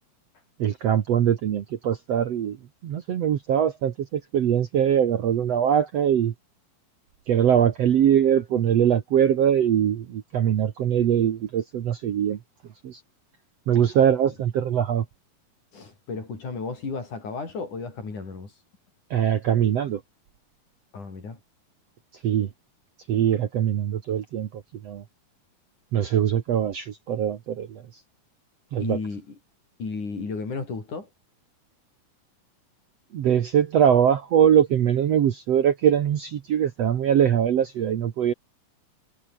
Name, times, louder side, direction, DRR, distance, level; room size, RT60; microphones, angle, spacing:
voice 1, 0.6-2.6 2.8-6.3 7.3-12.4 12.8-13.0 13.7-15.1 19.1-20.0 22.2-22.5 23.1-25.0 25.9-27.8 28.7-29.0 33.1-38.3, right 9 dB, 60° right, 2.0 m, -22 dB
voice 2, 15.7-18.5 20.9-21.4 28.8-29.4 29.8-31.1, left 4 dB, 55° left, 7.4 m, -33 dB
omnidirectional pair, 4.2 m